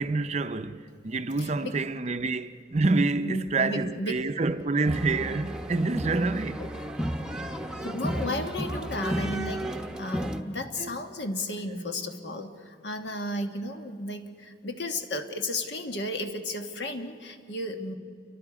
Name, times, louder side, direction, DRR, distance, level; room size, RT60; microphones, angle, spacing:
voice 1, 0.0-6.6 10.8-10.9, right 3 dB, 40° right, 0.5 m, -27 dB
voice 2, 1.4-1.7 3.2-4.2 6.6-6.7 7.8-18.0, left 1 dB, 70° left, 1.4 m, -33 dB
sound 1, 4.8-10.4, equal, 5° right, 0.9 m, -33 dB
28.5 x 23.5 x 4.9 m
head